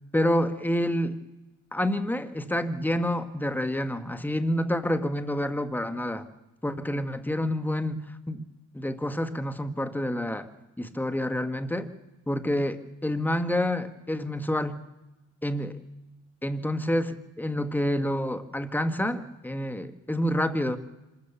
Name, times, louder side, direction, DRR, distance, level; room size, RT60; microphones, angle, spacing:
voice 1, 0.1-1.2 1.7-6.3 6.6-8.4 8.7-10.5 10.8-11.9 12.3-14.8 15.4-15.8 16.4-20.8, left 1 dB, 5° left, 10 dB, 1.4 m, -28 dB
26.0 x 14.0 x 7.0 m, 1.0 s
cardioid pair, 90°, 30 cm